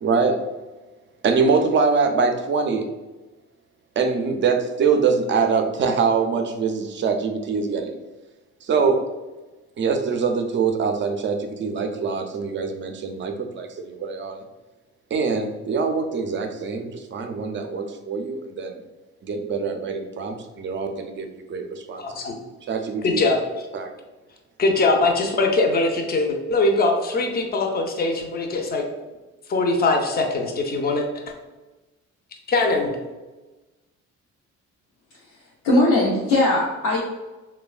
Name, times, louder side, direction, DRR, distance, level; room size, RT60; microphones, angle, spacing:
voice 1, 0.0-0.4 1.2-2.8 4.0-8.0 8.6-9.0 9.8-14.4 15.1-18.8 19.2-22.2 22.7-23.2 23.7-23.9, right 5 dB, 40° right, 5 dB, 0.4 m, -24 dB
voice 2, 22.0-22.3 23.0-23.4 24.6-28.8 29.5-31.1 32.5-32.9, left 3 dB, 30° left, 3 dB, 0.5 m, -21 dB
voice 3, 35.6-37.0, left 2 dB, 85° left, -5 dB, 0.6 m, -19 dB
3.1 x 2.1 x 2.3 m, 1.2 s
cardioid pair, 90°, 30 cm